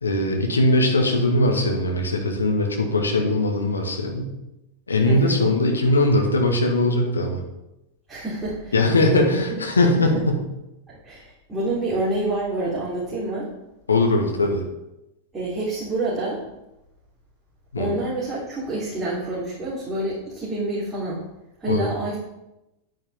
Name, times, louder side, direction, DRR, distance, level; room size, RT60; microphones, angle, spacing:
voice 1, 0.0-4.3 4.9-7.4 8.7-10.4 13.9-14.6 17.7-17.9 21.7-21.9, left 2 dB, 75° left, 2 dB, 1.7 m, -20 dB
voice 2, 5.0-5.4 8.1-8.7 9.1-9.6 10.0-10.2 10.9-13.5 15.3-16.4 17.8-21.2 21.6-22.2, right 2 dB, 15° right, -9 dB, 3.6 m, -27 dB
9.7 x 9.4 x 3.7 m, 0.92 s
figure-of-eight pair, 90°, 0 cm